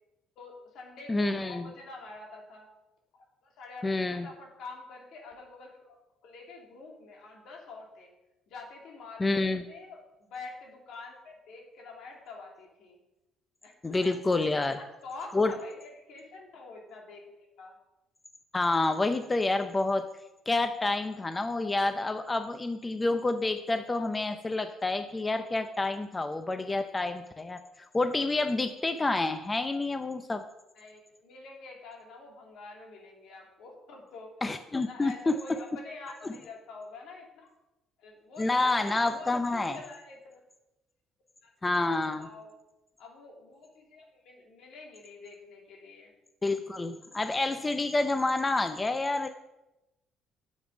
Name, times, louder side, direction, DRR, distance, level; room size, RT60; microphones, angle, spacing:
voice 1, 0.4-2.7 3.1-5.9 6.2-8.1 8.5-13.0 13.6-14.1 14.5-17.8 30.7-34.3 34.7-37.5 38.0-40.4 41.4-42.5 43.0-46.1, left 3 dB, 70° left, 0 dB, 2.7 m, -47 dB
voice 2, 1.1-1.7 3.8-4.3 9.2-9.6 13.8-14.8 15.3-15.5 18.5-20.1 20.5-30.5 34.4-35.4 38.4-39.8 41.6-42.3 46.4-49.3, left 2 dB, 20° left, 9 dB, 0.5 m, -28 dB
9.2 x 7.3 x 5.2 m, 0.96 s
cardioid pair, 100°, 0 cm